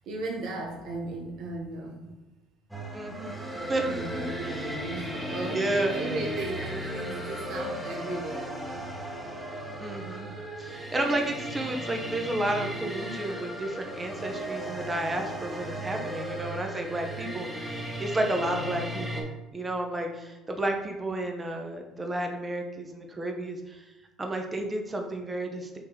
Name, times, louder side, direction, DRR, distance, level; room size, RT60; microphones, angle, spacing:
voice 1, 0.1-2.1 3.8-9.7, right 2 dB, 65° right, 0 dB, 0.7 m, -36 dB
sound 1, 2.7-19.2, right 1 dB, ahead, 1.1 m, -36 dB
voice 2, 2.9-3.4 3.7-4.7 5.5-5.9 9.8-10.3 10.6-23.8 24.2-25.8, right 1 dB, 20° right, 3 dB, 0.9 m, -32 dB
4.7 x 2.9 x 3.7 m, 1.1 s
hypercardioid pair, 65°, 0 cm